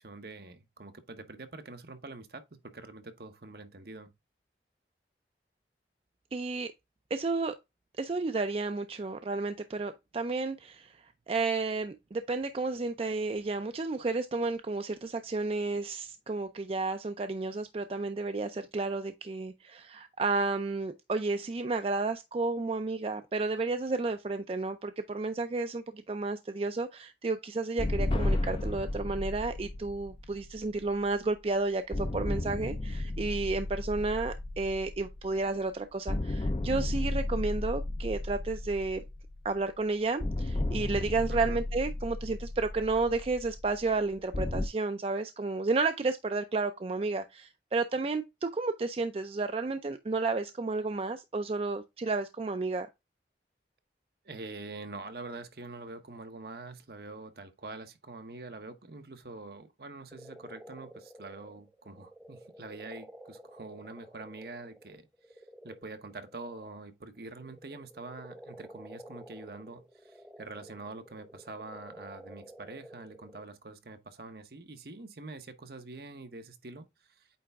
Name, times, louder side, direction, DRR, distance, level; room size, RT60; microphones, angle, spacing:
voice 1, 0.0-4.1 41.3-41.6 54.2-77.3, right 3 dB, 60° right, 0.9 m, -45 dB
voice 2, 6.3-6.7 7.1-7.5 8.0-39.0 39.4-52.9, right 3 dB, 35° right, 0.4 m, -32 dB
sound 1, 27.8-31.4 31.9-35.7 36.1-39.7 40.2-44.7, left 2 dB, 30° left, 0.4 m, -34 dB
sound 2, 60.1-66.8 67.2-73.5, equal, 5° right, 0.7 m, -51 dB
8.6 x 3.3 x 3.5 m
head